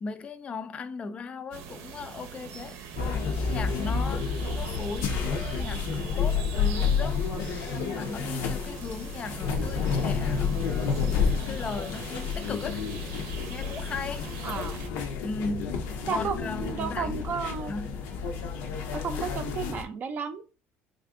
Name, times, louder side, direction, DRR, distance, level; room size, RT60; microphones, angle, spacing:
voice 1, 0.0-2.8 3.4-12.9 13.5-14.3 15.2-15.8 16.1-17.4 17.7-18.0 19.2-19.3, left 4 dB, 25° left, 0.3 m, -37 dB
sound 1, 1.5-14.9, right 7 dB, 80° right, 0.7 m, -43 dB
sound 2, 3.0-19.8, left 5 dB, 90° left, 0.7 m, -30 dB
voice 2, 14.4-14.9 16.1-17.7 18.9-20.5, right 6 dB, 40° right, 0.5 m, -33 dB
3.4 x 2.5 x 3.6 m
cardioid pair, 140°, 5 cm